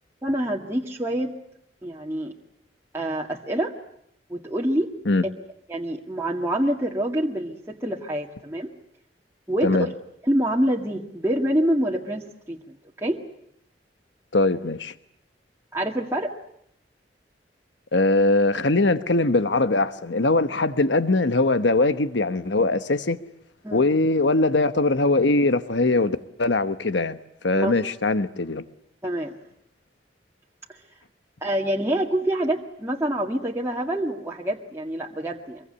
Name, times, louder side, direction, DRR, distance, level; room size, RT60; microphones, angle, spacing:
voice 1, 0.2-1.3 1.8-2.3 2.9-3.7 4.3-4.9 5.7-8.7 9.5-9.9 10.2-13.2 15.7-16.3 23.6-23.8 27.5-27.7 29.0-29.3 31.4-35.6, right 1 dB, 15° right, 1.9 m, -26 dB
voice 2, 14.3-14.9 17.9-23.2 23.7-27.2 27.4-28.6, left 2 dB, 85° left, 1.2 m, -21 dB
25.0 x 23.0 x 9.9 m
head